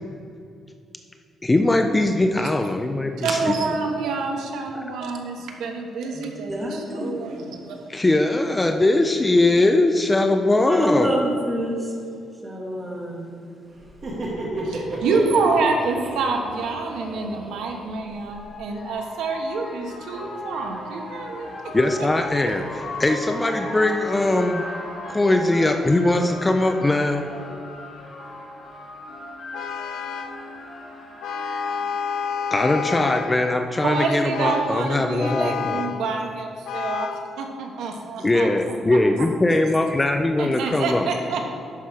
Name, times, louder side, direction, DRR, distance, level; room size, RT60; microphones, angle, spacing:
voice 1, 1.4-3.5 4.7-4.8 7.9-11.1 21.7-24.7 25.1-27.3 32.5-35.8 38.2-41.1, left 2 dB, 10° left, 5 dB, 0.4 m, -21 dB
voice 2, 3.2-7.9 14.6-21.7 22.0-22.1 33.8-37.1 37.4-39.3 40.4-41.5, right 4 dB, 80° right, 2 dB, 1.2 m, -27 dB
voice 3, 6.0-7.1 10.7-11.9 12.4-13.3, equal, 10° right, -1 dB, 1.3 m, -27 dB
Laughter, 13.8-18.5, right 1 dB, 35° right, 1.8 m, -33 dB
sound 1, 17.6-33.2, left 2 dB, 35° left, 1.7 m, -37 dB
Vehicle horn car horn honking, 29.5-30.4 31.2-33.4 33.9-34.8 35.2-36.0 36.7-37.3, left 6 dB, 75° left, 0.5 m, -29 dB
11.5 x 5.9 x 4.8 m, 2.4 s
cardioid pair, 180°, 0 cm